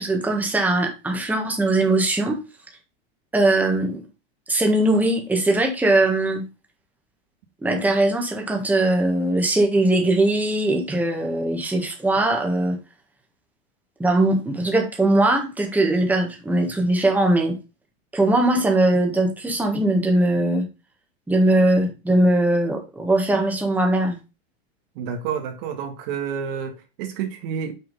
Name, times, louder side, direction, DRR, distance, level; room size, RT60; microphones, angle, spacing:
voice 1, 0.0-2.4 3.3-4.0 4.5-6.4 7.6-12.8 14.0-17.6 18.1-20.6 21.3-24.2, right 1 dB, 5° right, 1.5 m, -20 dB
voice 2, 24.9-27.7, right 7 dB, 55° right, 1.6 m, -29 dB
6.2 x 3.8 x 5.3 m
supercardioid pair, 130°, 32 cm